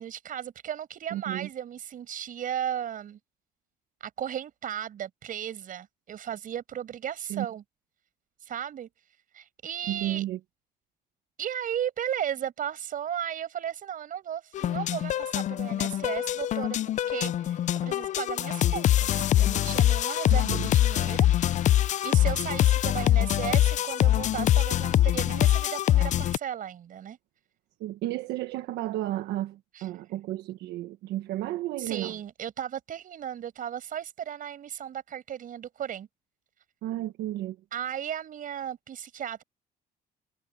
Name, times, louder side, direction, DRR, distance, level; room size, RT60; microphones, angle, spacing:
voice 1, 0.0-3.2 4.0-7.6 8.4-8.9 9.3-10.2 11.4-21.7 22.0-27.2 29.7-29.9 31.8-36.1 37.7-39.4, right 9 dB, 55° right, 6.1 m, -35 dB
voice 2, 1.1-1.5 7.3-7.5 9.9-10.4 20.3-20.7 27.8-32.2 36.8-37.6, right 14 dB, 85° right, 1.3 m, -32 dB
sound 1, 14.5-26.4, left 12 dB, 45° left, 0.4 m, -24 dB
cardioid pair, 110°, 17 cm